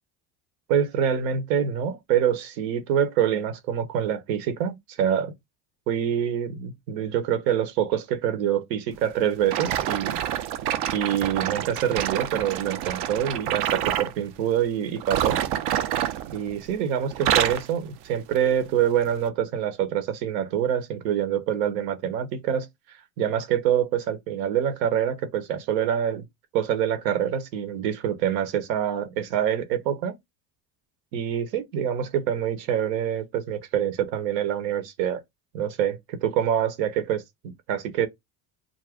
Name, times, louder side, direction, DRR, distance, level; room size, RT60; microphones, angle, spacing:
voice 1, 0.7-5.3 5.9-10.2 10.9-15.4 16.3-22.7 23.2-26.2 26.5-30.2 31.1-35.2 35.5-38.1, right 9 dB, 80° right, 0.9 m, -26 dB
sound 1, 9.5-14.1 15.0-16.8 17.1-17.7 18.3-18.5 19.2-19.3, right 11 dB, 55° right, 0.5 m, -27 dB
2.5 x 2.1 x 3.4 m
supercardioid pair, 95°, 48 cm